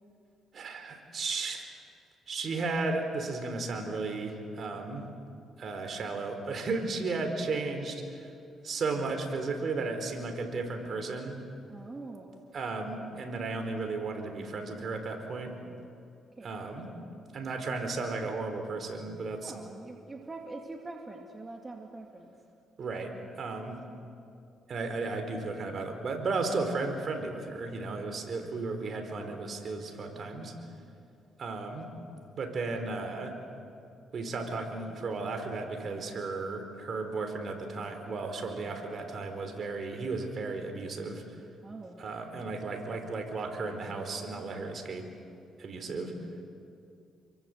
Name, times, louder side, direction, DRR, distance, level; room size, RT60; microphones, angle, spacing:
voice 1, 0.5-1.6 2.3-5.0 5.6-8.3 8.6-11.4 12.5-15.6 16.4-16.9 17.3-19.5 22.8-23.8 24.7-30.5 31.4-31.9 32.4-33.4 34.1-41.2 42.0-45.1 45.6-46.2, right 3 dB, 50° right, 5 dB, 4.4 m, -34 dB
voice 2, 11.7-12.4 16.4-16.6 16.9-17.1 19.4-22.3 41.6-42.0, right 2 dB, 25° right, 1 dB, 2.5 m, -44 dB
29.5 x 23.0 x 8.1 m, 2.5 s
cardioid pair, 90°, 0 cm